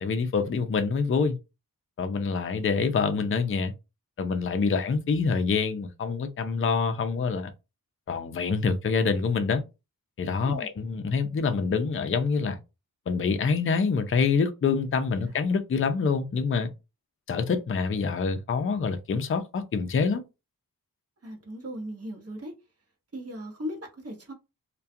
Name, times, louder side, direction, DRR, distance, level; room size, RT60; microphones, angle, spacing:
voice 1, 0.0-1.4 2.0-3.7 4.2-7.5 8.1-9.6 10.2-12.6 13.1-16.7 17.3-20.2, left 5 dB, 35° left, 0.4 m, -26 dB
voice 2, 10.4-10.7 15.2-15.4 21.2-22.5 23.1-24.3, equal, 40° right, 0.9 m, -38 dB
2.3 x 2.2 x 2.6 m
wide cardioid pair, 70°, 37 cm